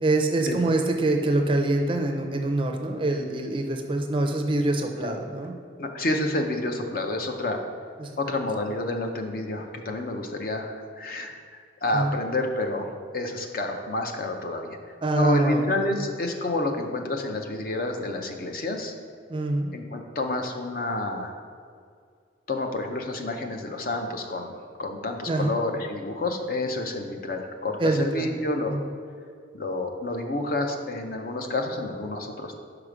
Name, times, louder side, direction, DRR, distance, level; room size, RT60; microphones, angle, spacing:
voice 1, 0.0-5.5 8.0-8.1 11.9-12.1 15.0-16.0 19.3-19.7 25.3-25.6 27.8-28.3 28.7-28.9, right 2 dB, 25° right, 4 dB, 0.4 m, -25 dB
voice 2, 5.8-7.6 8.2-10.7 11.0-11.3 11.8-12.9 13.1-14.8 15.2-18.9 19.7-21.3 22.5-28.7 29.5-32.6, left 2 dB, 50° left, 4 dB, 0.6 m, -29 dB
4.9 x 4.8 x 5.0 m, 2.2 s
head